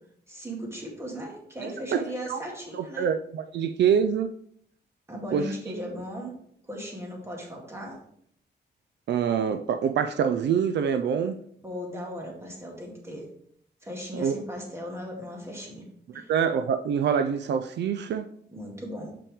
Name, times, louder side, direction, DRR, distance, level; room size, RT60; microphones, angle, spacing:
voice 1, 0.3-3.1 5.1-6.3 6.7-8.0 11.6-13.3 13.8-15.8 16.1-16.3 18.5-19.1, equal, 15° right, -1 dB, 2.0 m, -37 dB
voice 2, 2.7-4.3 5.3-5.4 9.1-11.4 14.1-14.4 16.3-18.3, right 7 dB, 75° right, 9 dB, 0.4 m, -25 dB
7.0 x 5.6 x 3.5 m, 0.66 s
wide cardioid pair, 135°, 18 cm